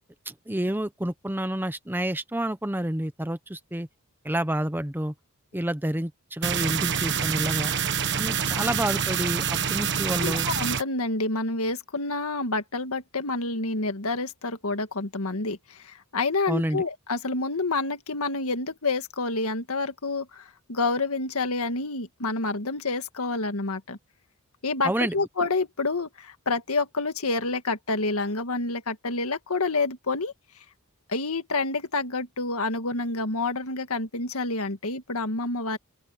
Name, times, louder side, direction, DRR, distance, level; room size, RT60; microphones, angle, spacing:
voice 1, 0.3-3.9 4.2-5.1 5.5-7.7 8.1-9.4 9.7-10.5 16.5-16.8 24.8-25.2, right 1 dB, 10° right, 0.9 m, -29 dB
sound 1, 6.4-10.8, right 7 dB, 55° right, 1.3 m, -26 dB
voice 2, 10.2-24.0 24.6-30.3 31.1-35.8, left 3 dB, 75° left, 1.8 m, -28 dB
open air
head